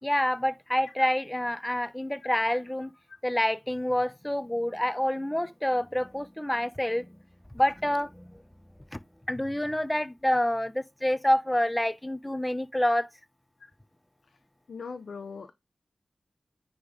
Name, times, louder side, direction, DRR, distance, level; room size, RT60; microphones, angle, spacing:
voice 1, 0.0-2.9 3.2-7.1 7.5-8.2 8.9-9.0 9.3-13.1, left 1 dB, 10° left, 0.7 m, -27 dB
voice 2, 14.7-15.5, left 5 dB, 90° left, 0.7 m, -40 dB
9.4 x 3.8 x 4.9 m
cardioid pair, 55°, 0 cm